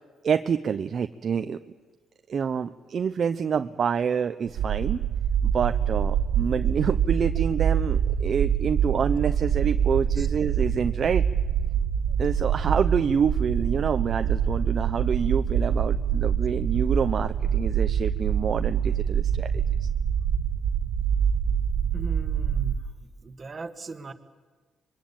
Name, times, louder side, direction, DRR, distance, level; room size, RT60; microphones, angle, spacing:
voice 1, 0.2-1.6 2.3-5.0 5.4-11.2 12.2-19.9, right 7 dB, 50° right, 9 dB, 0.7 m, -27 dB
sound 1, 4.6-22.7, right 8 dB, 75° right, 1.4 m, -25 dB
voice 2, 21.9-22.8 23.2-24.1, right 3 dB, 35° right, 7 dB, 1.9 m, -38 dB
25.0 x 23.0 x 8.9 m, 1.4 s
cardioid pair, 90°, 0 cm